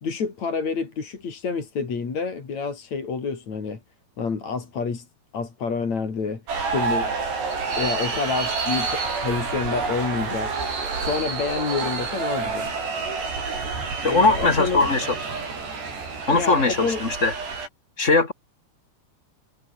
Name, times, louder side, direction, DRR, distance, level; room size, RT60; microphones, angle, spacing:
voice 1, 0.0-3.8 4.2-5.1 5.3-7.1 7.8-10.5 11.0-12.7 14.0-14.8 16.3-17.0, left 5 dB, 40° left, 5.1 m, -28 dB
sound 1, 6.5-17.7, right 4 dB, 75° right, 9.8 m, -28 dB
voice 2, 14.0-15.1 16.3-17.3 18.0-18.3, left 3 dB, 20° left, 3.0 m, -20 dB
omnidirectional pair, 4.8 m